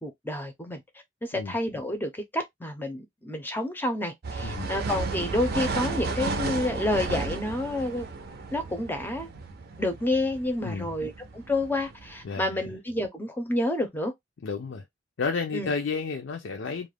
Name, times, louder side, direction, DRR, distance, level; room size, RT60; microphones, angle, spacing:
voice 1, 0.0-0.8 1.2-8.1 8.5-9.3 9.8-14.1 15.5-15.7, left 1 dB, 10° left, 0.5 m, -29 dB
sound 1, 4.2-12.2, right 4 dB, 55° right, 0.5 m, -33 dB
voice 2, 4.4-4.7 10.6-10.9 12.2-12.6 14.4-14.8 15.2-16.9, left 4 dB, 70° left, 0.4 m, -31 dB
2.4 x 2.1 x 3.2 m
head